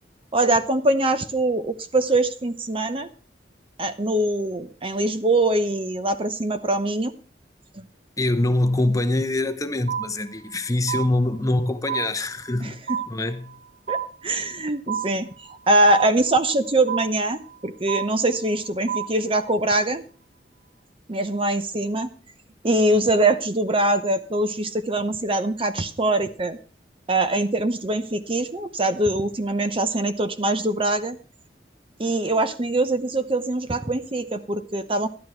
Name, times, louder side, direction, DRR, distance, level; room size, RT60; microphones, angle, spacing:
voice 1, 0.3-3.1 3.8-7.1 7.8-7.9 12.6-13.0 13.9-20.0 21.1-22.1 22.6-26.6 27.1-31.2 32.0-35.1, right 2 dB, 30° right, 0.8 m, -23 dB
voice 2, 8.2-12.8 13.1-13.5, left 2 dB, 20° left, 0.8 m, -24 dB
sound 1, 9.9-10.6 10.9-11.6 11.9-12.6 12.9-13.6 13.9-14.6 14.9-15.6 15.9-16.6 16.9-17.6 17.9-18.6 18.9-19.6, right 8 dB, 85° right, 4.4 m, -30 dB
12.5 x 11.0 x 4.5 m
head